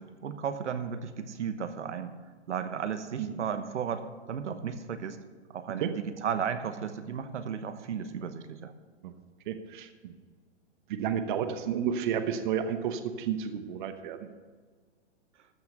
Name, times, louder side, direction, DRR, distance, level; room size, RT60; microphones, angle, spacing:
voice 1, 0.0-2.1 2.5-5.2 5.5-8.7, right 7 dB, 85° right, 9 dB, 1.2 m, -34 dB
voice 2, 9.5-10.2 10.9-14.3, right 8 dB, 45° right, 9 dB, 1.0 m, -31 dB
14.0 x 6.0 x 6.6 m, 1.5 s
hypercardioid pair, 150°, 34 cm